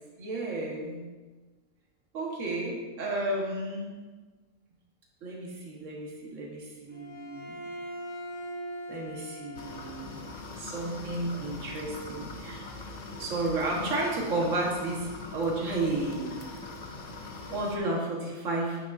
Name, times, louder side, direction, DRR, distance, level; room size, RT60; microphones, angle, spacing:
voice 1, 0.2-1.0 2.1-4.0 5.2-7.6 8.9-10.2 10.6-12.7 13.2-16.4 17.5-18.8, right 2 dB, 55° right, -2 dB, 1.7 m, -32 dB
Bowed string instrument, 6.9-10.3, equal, 35° right, 1.8 m, -41 dB
sound 1, 9.5-17.8, left 3 dB, 85° left, 0.3 m, -42 dB
8.8 x 6.4 x 2.6 m, 1.3 s
omnidirectional pair, 1.6 m